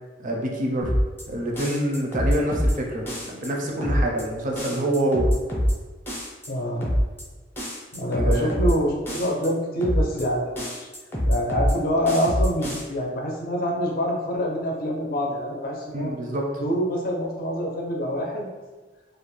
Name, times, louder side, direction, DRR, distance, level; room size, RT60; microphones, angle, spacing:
voice 1, 0.2-0.9 1.3-5.3 8.1-8.5 15.9-16.4, right 1 dB, 45° right, -1 dB, 0.4 m, -26 dB
sound 1, 0.8-1.2 1.6-2.7 3.1-3.5 3.8-4.2 4.6-5.7 6.1-6.5 6.8-7.2 7.6-8.7 9.1-9.5 9.8-10.2 10.6-11.7 12.1-12.8, equal, 10° left, 0.6 m, -24 dB
voice 2, 6.5-6.9 7.9-10.9 11.3-16.1 16.6-18.5, equal, 50° left, -1 dB, 0.5 m, -26 dB
2.4 x 2.1 x 3.1 m, 1.3 s
head